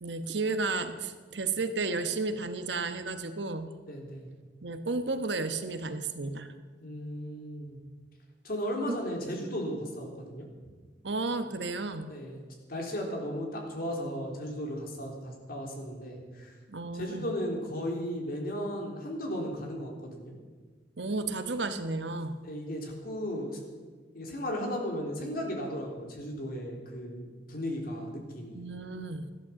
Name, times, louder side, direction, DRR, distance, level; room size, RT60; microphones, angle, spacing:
voice 1, 0.0-3.7 4.6-6.5 8.9-9.0 11.0-12.1 16.7-17.3 21.0-22.4 28.5-29.3, right 3 dB, 75° right, 9 dB, 1.1 m, -33 dB
voice 2, 3.9-4.3 6.8-7.8 8.4-10.5 12.1-12.4 12.7-16.5 16.9-20.3 22.4-23.6 24.1-28.6, equal, 55° left, 0 dB, 3.6 m, -35 dB
15.0 x 11.5 x 7.5 m, 1.4 s
head